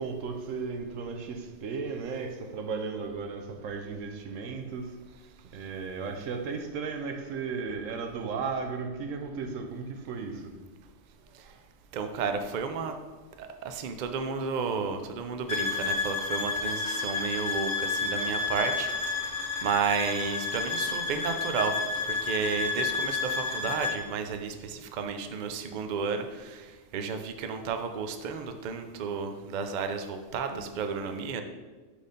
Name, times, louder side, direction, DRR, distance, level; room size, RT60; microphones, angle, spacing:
voice 1, 0.0-4.9 5.5-10.5, right 5 dB, 90° right, 5 dB, 1.1 m, -35 dB
voice 2, 11.9-13.0 13.4-31.4, right 5 dB, 55° right, 7 dB, 0.5 m, -32 dB
sound 1, 15.5-24.0, left 4 dB, 60° left, 1.3 m, -31 dB
5.0 x 4.3 x 5.1 m, 1.3 s
omnidirectional pair, 1.3 m